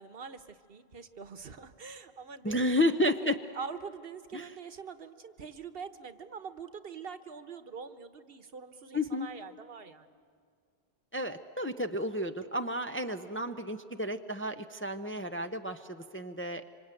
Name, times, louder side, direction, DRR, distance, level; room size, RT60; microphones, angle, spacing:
voice 1, 0.0-2.7 3.5-10.1, right 5 dB, 65° right, 10 dB, 1.2 m, -44 dB
voice 2, 2.4-3.4 4.3-4.5 8.9-9.3 11.1-16.7, left 1 dB, 15° left, 7 dB, 0.5 m, -31 dB
26.0 x 25.5 x 9.0 m, 2.1 s
omnidirectional pair, 1.0 m